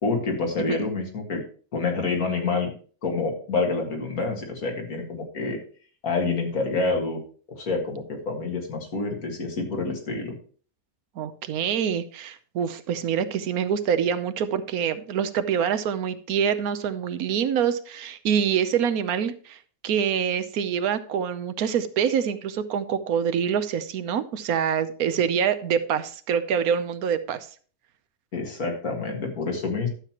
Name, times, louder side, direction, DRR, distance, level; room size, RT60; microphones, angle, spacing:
voice 1, 0.0-1.4 1.7-2.7 3.0-5.6 6.0-7.2 7.5-10.4 28.3-29.9, left 3 dB, 80° left, 1 dB, 2.3 m, -27 dB
voice 2, 11.2-19.6 19.8-27.5, right 8 dB, 85° right, 12 dB, 1.2 m, -25 dB
12.0 x 7.4 x 3.0 m, 0.42 s
omnidirectional pair, 1.5 m